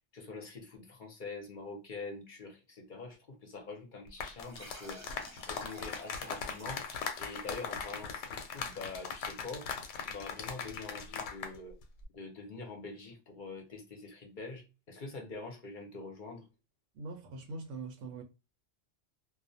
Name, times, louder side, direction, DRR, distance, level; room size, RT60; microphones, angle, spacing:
voice 1, 0.1-6.8 7.2-9.7 10.0-11.8 12.1-16.5, left 3 dB, 50° left, 0.7 m, -45 dB
sound 1, 4.1-11.6 11.8-12.1, left 6 dB, 90° left, 0.9 m, -40 dB
sound 2, 4.4-9.5, right 1 dB, 25° right, 0.3 m, -53 dB
voice 2, 16.9-18.2, right 3 dB, 85° right, 0.9 m, -42 dB
2.3 x 2.1 x 2.6 m
omnidirectional pair, 1.2 m